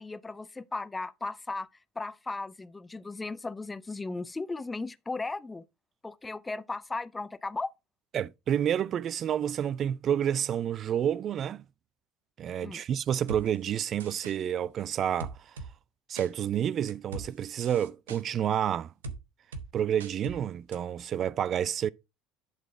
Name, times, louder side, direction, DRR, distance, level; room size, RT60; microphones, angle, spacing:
voice 1, 0.0-1.7 2.0-5.6 6.0-7.7 12.6-12.8, left 3 dB, 15° left, 0.5 m, -36 dB
voice 2, 8.1-11.6 12.4-15.4 16.1-18.9 19.7-21.9, right 9 dB, 45° right, 0.4 m, -29 dB
sound 1, 13.3-13.4 14.0-14.4 15.2-15.7 16.2-16.3 16.9-17.3 17.6-18.2 19.0-19.2 19.5-19.7 20.0-20.4 20.7-20.8, right 3 dB, 85° right, 1.0 m, -40 dB
11.0 x 4.2 x 4.4 m
hypercardioid pair, 70°, 0 cm